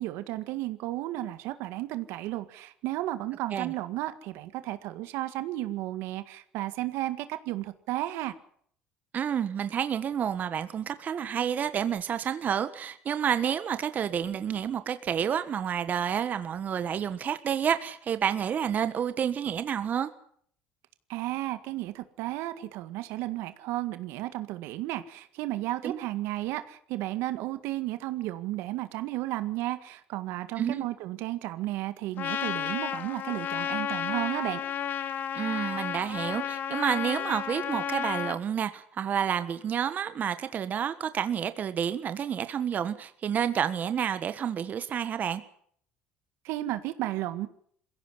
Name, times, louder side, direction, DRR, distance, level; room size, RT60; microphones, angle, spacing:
voice 1, 0.0-8.3 21.1-34.6 46.4-47.5, right 16 dB, 75° right, 11 dB, 1.9 m, -33 dB
voice 2, 9.1-20.1 25.8-26.0 30.6-30.9 35.3-45.4, right 8 dB, 40° right, 11 dB, 1.4 m, -29 dB
Trumpet, 32.2-38.4, left 9 dB, 50° left, 1.7 m, -32 dB
21.5 x 16.5 x 9.8 m, 0.64 s
cardioid pair, 105°, 4 cm